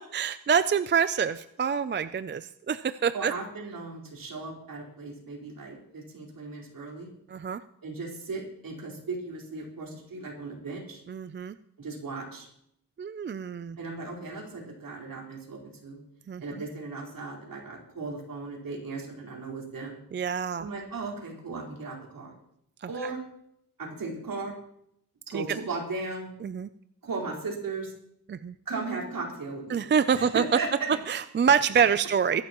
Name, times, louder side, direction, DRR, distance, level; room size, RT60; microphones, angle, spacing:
voice 1, 0.1-3.3 7.3-7.6 11.1-11.5 13.0-13.8 16.3-16.4 20.1-20.7 25.3-25.4 26.4-26.7 28.3-28.5 29.7-30.4 31.1-32.4, right 7 dB, 30° right, 12 dB, 0.4 m, -26 dB
voice 2, 3.1-7.1 7.8-11.0 11.8-12.5 13.8-16.0 16.4-20.0 20.6-22.3 22.9-23.2 23.8-24.5 25.3-26.3 27.0-27.9 28.7-29.8 30.1-30.9, right 3 dB, 65° right, -3 dB, 4.4 m, -36 dB
23.0 x 11.5 x 3.0 m, 0.75 s
wide cardioid pair, 130°, 36 cm